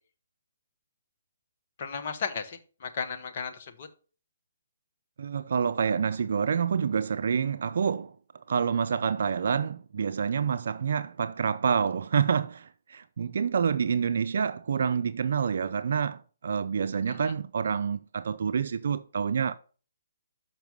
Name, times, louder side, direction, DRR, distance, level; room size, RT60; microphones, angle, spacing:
voice 1, 1.8-3.9, left 6 dB, 50° left, 1.1 m, -35 dB
voice 2, 5.2-8.1 8.5-19.6, right 6 dB, 60° right, 0.4 m, -27 dB
5.9 x 5.9 x 5.3 m
hypercardioid pair, 140°, 0 cm